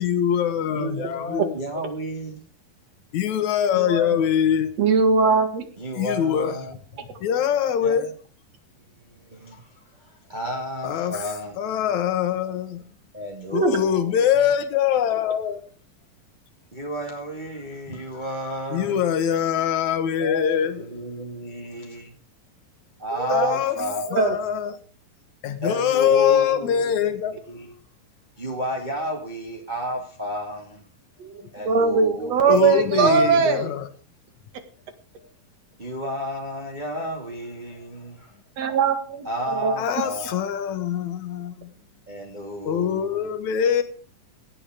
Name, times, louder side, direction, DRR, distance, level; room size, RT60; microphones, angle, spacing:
voice 1, 0.0-1.5 3.1-4.7 5.9-6.6 7.2-8.1 10.8-11.3 11.6-12.9 13.5-15.6 18.7-20.9 23.3-23.8 24.1-24.8 25.4-27.4 31.3-31.5 32.5-33.9 35.2-35.3 39.8-41.7 42.6-43.8, left 9 dB, 60° left, 10 dB, 2.7 m, -23 dB
voice 2, 0.7-2.4 3.7-4.4 5.8-7.1 7.8-8.1 8.8-11.6 13.1-14.2 16.7-19.0 20.2-22.1 23.0-24.4 25.6-27.0 27.3-27.7 28.4-30.9 31.5-33.3 35.8-38.4 39.2-40.4 42.1-43.2, equal, 15° right, 0 dB, 2.2 m, -32 dB
voice 3, 4.8-5.6 13.5-13.8 23.2-23.5 24.1-24.4 31.2-33.7 38.6-39.7, right 5 dB, 55° right, 8 dB, 2.8 m, -20 dB
17.5 x 11.0 x 5.1 m, 0.43 s
omnidirectional pair, 4.1 m